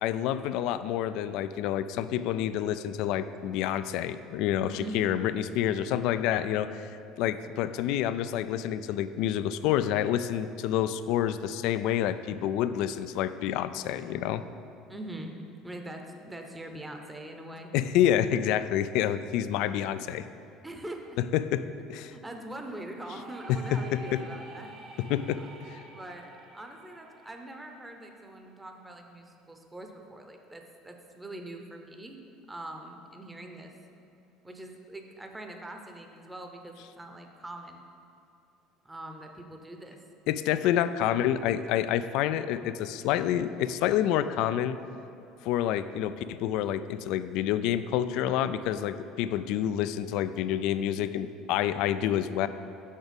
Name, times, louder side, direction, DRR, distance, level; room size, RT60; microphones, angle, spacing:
voice 1, 0.0-6.9 7.2-14.4 17.7-20.2 21.3-21.6 21.9-22.1 23.5-23.6 23.9-24.2 25.0-25.8 40.3-44.8 45.4-52.5, left 11 dB, 70° left, 13 dB, 0.3 m, -28 dB
voice 2, 4.6-5.0 14.9-15.4 15.6-17.7 20.6-21.2 22.1-24.7 25.4-25.5 25.9-32.2 32.5-33.7 34.4-37.8 38.8-40.0, right 1 dB, 10° right, 3 dB, 0.8 m, -43 dB
sound 1, 23.1-28.7, right 3 dB, 50° right, 1.1 m, -49 dB
6.5 x 5.9 x 5.2 m, 2.7 s
supercardioid pair, 90°, 0 cm